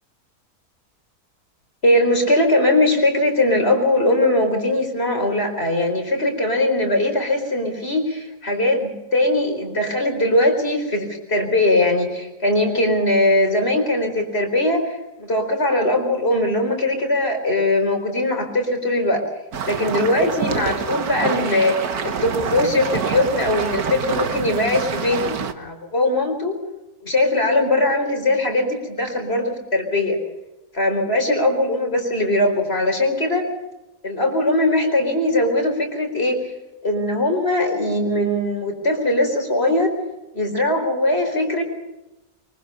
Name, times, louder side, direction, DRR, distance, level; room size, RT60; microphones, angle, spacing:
voice 1, 1.8-19.3 19.6-26.5 27.0-30.2 30.7-33.5 34.0-36.5 36.8-40.0 40.3-41.6, left 1 dB, 40° left, 4 dB, 4.8 m, -20 dB
sound 1, 19.5-25.5, right 6 dB, 80° right, 1.8 m, -26 dB
24.0 x 23.5 x 5.6 m, 1.0 s
omnidirectional pair, 1.6 m